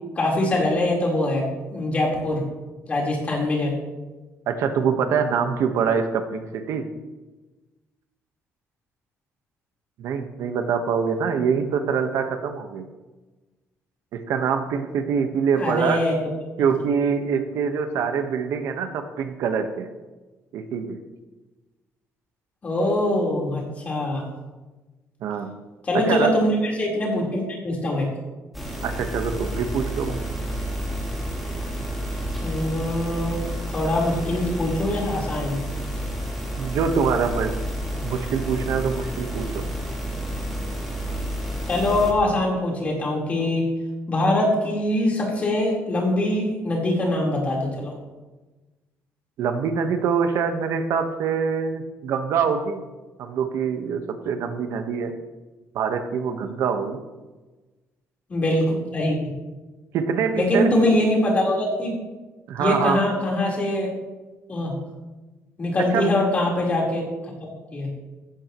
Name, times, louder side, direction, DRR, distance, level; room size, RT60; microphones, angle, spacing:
voice 1, 0.2-2.4 2.9-3.7 15.6-16.2 22.6-24.3 25.8-28.1 32.4-35.6 41.7-43.7 44.1-47.9 58.3-59.1 60.4-61.9 62.6-63.9 64.5-64.7 65.6-67.1 67.7-67.9, left 1 dB, 30° left, -2 dB, 4.3 m, -23 dB
voice 2, 4.5-6.9 10.0-12.9 14.1-16.0 16.6-19.9 20.5-21.0 25.2-25.6 25.9-26.3 28.8-30.2 36.6-37.6 38.0-39.7 49.4-52.9 53.2-55.1 55.7-57.0 59.9-60.9 62.5-63.0 65.8-66.1, right 6 dB, 75° right, 6 dB, 1.4 m, -24 dB
sound 1, 28.5-42.1, equal, ahead, 3.6 m, -30 dB
16.0 x 15.5 x 3.2 m, 1.2 s
cardioid pair, 155°, 5 cm